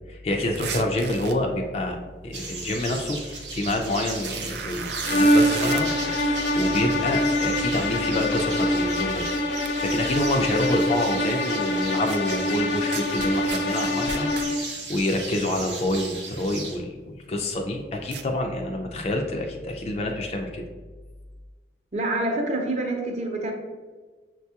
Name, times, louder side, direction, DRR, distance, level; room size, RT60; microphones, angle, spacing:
voice 1, 0.1-2.0 2.2-5.9 6.2-9.2 9.8-20.6, left 1 dB, 35° left, 2 dB, 0.3 m, -27 dB
sound 1, 0.6-1.3 3.5-3.6 4.1-5.8 9.2-9.3 9.6-9.7 12.1-12.2 12.9-14.5 18.1-18.2, right 7 dB, 70° right, 0.3 m, -34 dB
sound 2, 2.3-16.8, right 3 dB, 85° right, 0.9 m, -37 dB
sound 3, 5.0-14.7, left 1 dB, 75° left, 0.6 m, -24 dB
voice 2, 21.9-23.5, right 2 dB, 40° right, 1 dB, 0.6 m, -26 dB
6.1 x 2.3 x 2.8 m, 1.4 s
head